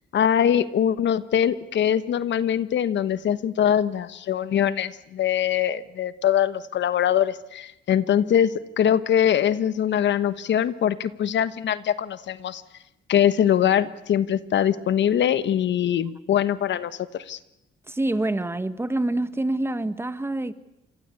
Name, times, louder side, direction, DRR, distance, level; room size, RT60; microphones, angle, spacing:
voice 1, 0.1-12.6 13.1-17.0 17.3-17.4, left 9 dB, 65° left, 14 dB, 1.2 m, -22 dB
voice 2, 17.9-20.5, right 2 dB, 10° right, 12 dB, 1.6 m, -26 dB
27.5 x 22.5 x 8.6 m, 0.84 s
cardioid pair, 90°, 20 cm